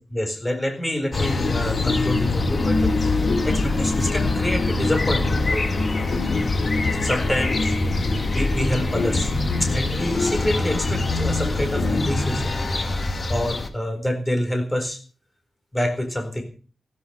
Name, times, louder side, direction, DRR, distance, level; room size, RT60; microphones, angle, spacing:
voice 1, 0.1-5.7 7.0-7.8 8.3-9.3 9.6-12.6 13.3-15.0 15.7-16.4, left 1 dB, 10° left, 5 dB, 4.2 m, -27 dB
sound 1, 1.1-13.0, left 3 dB, 60° left, 4.3 m, -26 dB
sound 2, 1.1-13.7, left 2 dB, 35° left, 2.1 m, -25 dB
15.0 x 14.0 x 5.8 m, 0.39 s
wide cardioid pair, 155°, 0 cm